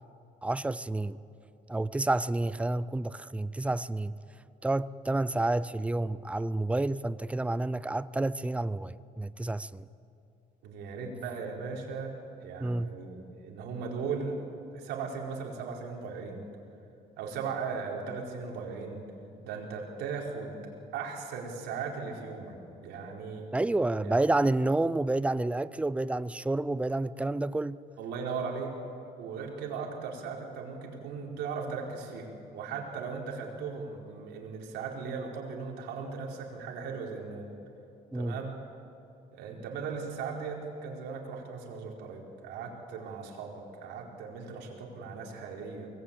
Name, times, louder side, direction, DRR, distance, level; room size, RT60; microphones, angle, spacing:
voice 1, 0.4-1.2 1.7-4.1 4.6-9.9 12.6-12.9 23.5-27.8 38.1-38.4, right 2 dB, 5° right, 0.5 m, -29 dB
voice 2, 10.6-14.4 14.7-16.5 17.2-19.0 19.4-20.6 20.9-22.6 22.8-23.4 24.0-24.1 28.0-28.7 29.2-32.3 32.5-37.5 38.1-38.6 39.3-45.9, right 5 dB, 85° right, 4.5 m, -38 dB
24.0 x 19.5 x 8.9 m
cardioid pair, 110°, 17 cm